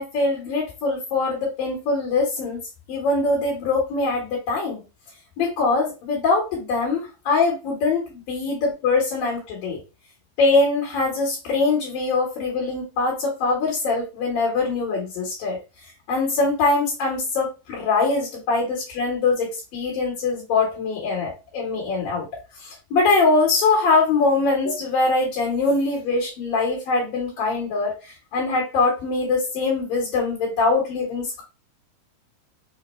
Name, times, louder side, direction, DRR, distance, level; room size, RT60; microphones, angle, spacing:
voice 1, 0.0-2.6 2.9-4.8 5.4-9.8 10.4-15.6 16.1-22.3 22.6-31.4, left 3 dB, 65° left, -2 dB, 2.7 m, -23 dB
6.1 x 2.1 x 3.0 m, 0.29 s
omnidirectional pair, 4.6 m